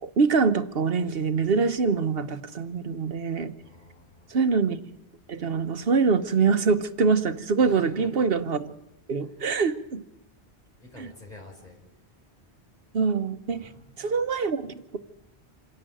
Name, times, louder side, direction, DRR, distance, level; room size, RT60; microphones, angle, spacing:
voice 1, 0.0-3.5 4.3-4.8 5.3-8.7 9.1-10.0 12.9-13.7 14.0-15.0, right 5 dB, 60° right, 9 dB, 1.2 m, -24 dB
voice 2, 3.6-4.4 7.6-8.1 9.2-9.6 10.8-11.8 13.5-14.1, equal, 40° left, 0 dB, 5.7 m, -48 dB
27.0 x 11.0 x 9.0 m, 0.91 s
omnidirectional pair, 1.1 m